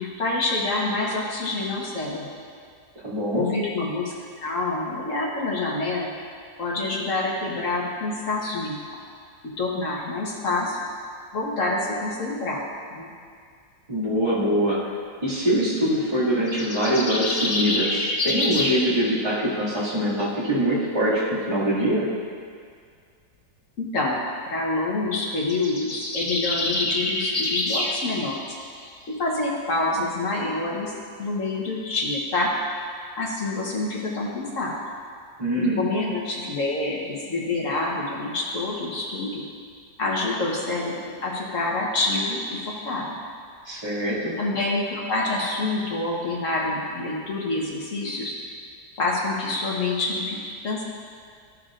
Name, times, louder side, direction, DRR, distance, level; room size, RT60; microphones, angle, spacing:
voice 1, 0.0-2.3 3.3-4.1 4.4-6.1 6.6-9.0 9.6-10.8 11.3-12.6 12.9-13.1 23.8-24.2 24.5-28.4 29.1-32.5 33.2-34.7 35.5-39.4 40.0-43.2 44.4-48.4 49.0-50.8, left 2 dB, 50° left, -3 dB, 1.3 m, -27 dB
voice 2, 3.0-3.5 13.9-14.8 15.2-22.1 35.4-35.8 43.6-44.3, equal, 20° right, -10 dB, 2.2 m, -23 dB
sound 1, 16.5-18.8 25.4-27.9, left 2 dB, 35° left, 1.7 m, -26 dB
14.0 x 6.6 x 2.5 m, 2.1 s
omnidirectional pair, 1.9 m